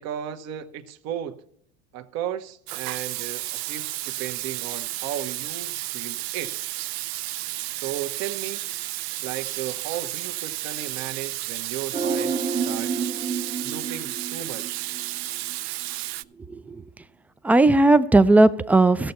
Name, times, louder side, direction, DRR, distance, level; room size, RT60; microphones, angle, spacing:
voice 1, 0.0-1.4 1.9-6.6 7.7-8.6 9.2-13.1 13.6-14.9, right 10 dB, 60° right, 1.1 m, -35 dB
Water tap faucet / Sink (filling or washing), 2.7-16.2, right 17 dB, 80° right, 0.5 m, -32 dB
sound 1, 11.9-15.2 15.5-15.6, right 5 dB, 25° right, 0.7 m, -29 dB
voice 2, 16.5-16.8 17.4-19.1, right 2 dB, 5° right, 0.3 m, -17 dB
16.0 x 6.8 x 4.3 m
supercardioid pair, 110°, 31 cm